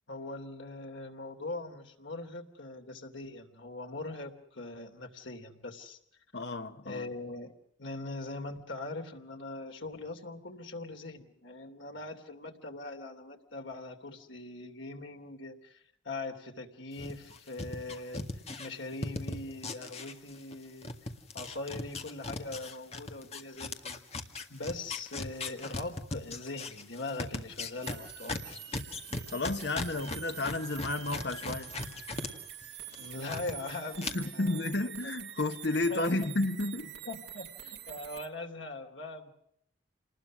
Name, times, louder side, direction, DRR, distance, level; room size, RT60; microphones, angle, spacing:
voice 1, 0.1-6.0 6.8-7.5 7.8-18.2 18.6-20.9 21.3-24.0 24.5-28.6 33.0-35.1 35.7-36.1 37.0-39.3, left 2 dB, 85° left, 3.1 m, -41 dB
voice 2, 6.3-7.1 29.3-31.7 34.0-36.9, left 2 dB, 60° left, 1.2 m, -32 dB
sound 1, 17.0-20.6 20.8-32.3 32.6-33.5 34.0-34.1, left 3 dB, 35° left, 1.8 m, -38 dB
sound 2, 27.8-38.3, right 10 dB, 60° right, 1.8 m, -46 dB
28.0 x 20.0 x 6.2 m
head